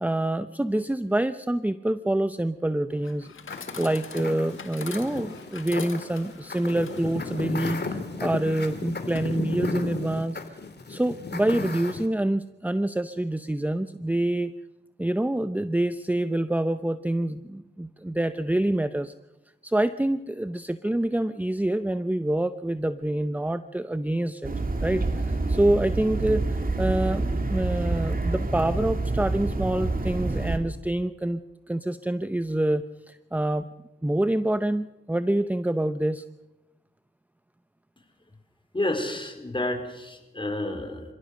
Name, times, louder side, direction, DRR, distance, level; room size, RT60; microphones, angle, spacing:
voice 1, 0.0-10.6 10.9-14.5 15.0-19.1 19.6-24.5 24.8-26.4 26.8-31.4 31.7-33.7 34.0-36.2, right 1 dB, 10° right, 11 dB, 0.7 m, -26 dB
Chatter / Coin (dropping), 2.9-9.9, left 6 dB, 75° left, 1.8 m, -45 dB
sound 1, 3.5-12.1, left 3 dB, 55° left, 2.6 m, -34 dB
sound 2, 24.4-30.6, right 2 dB, 45° right, 2.6 m, -27 dB
voice 2, 38.7-41.0, left 1 dB, 25° left, 4 dB, 4.5 m, -30 dB
27.5 x 16.0 x 6.5 m, 0.99 s
cardioid pair, 60°, 21 cm